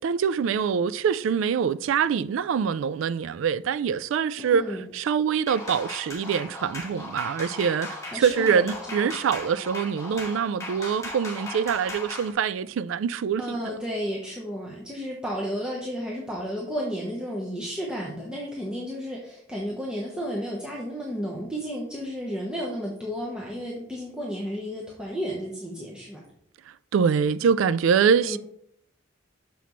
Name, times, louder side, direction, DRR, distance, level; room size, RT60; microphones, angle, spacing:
voice 1, 0.0-13.8 26.9-28.4, right 7 dB, 80° right, 0.3 m, -24 dB
voice 2, 4.4-4.8 8.0-9.1 13.4-26.2 28.2-28.4, equal, 5° right, 0.9 m, -32 dB
sound 1, 5.5-12.3, left 2 dB, 15° left, 1.5 m, -38 dB
6.9 x 5.9 x 3.1 m
head